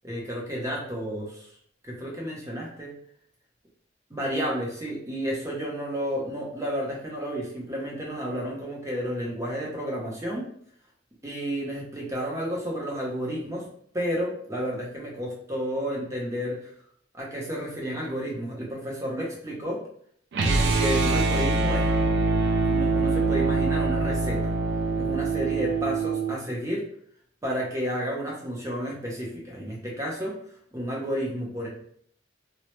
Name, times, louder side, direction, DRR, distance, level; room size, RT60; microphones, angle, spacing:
voice 1, 0.0-1.5 1.8-2.9 4.1-10.5 11.2-13.7 13.9-16.7 17.1-19.8 20.4-21.9 22.6-24.5 25.0-26.8 27.4-30.4 30.7-31.7, equal, 15° right, -3 dB, 0.6 m, -31 dB
sound 1, 20.3-26.4, right 3 dB, 65° right, 0.3 m, -24 dB
2.1 x 2.0 x 2.9 m, 0.63 s
head